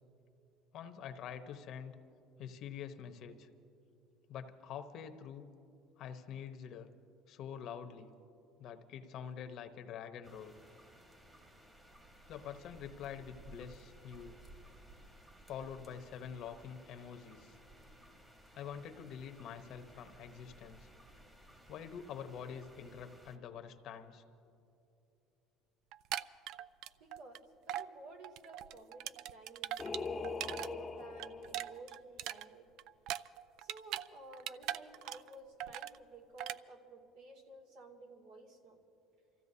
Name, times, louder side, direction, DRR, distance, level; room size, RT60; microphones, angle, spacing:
voice 1, 0.7-1.9 2.4-3.5 4.3-5.5 6.0-6.9 7.3-8.1 8.6-10.5 12.3-14.4 15.5-17.6 18.5-20.9 21.7-24.2, left 8 dB, 55° left, 7 dB, 0.9 m, -46 dB
sound 1, 10.2-23.4, right 1 dB, 10° right, 1.3 m, -58 dB
sound 2, 25.9-27.4 27.7-27.9 28.2-30.7 31.0-34.1 34.3-35.3 35.6-36.0 36.4-36.6, right 12 dB, 65° right, 0.3 m, -41 dB
voice 2, 27.0-27.4 27.7-29.8 30.5-32.7 33.6-38.8, right 2 dB, 85° right, -1 dB, 2.4 m, -54 dB
Singing, 29.8-31.8, left 4 dB, 20° left, 0.7 m, -41 dB
29.0 x 15.0 x 2.8 m, 2.8 s
cardioid pair, 125°, 0 cm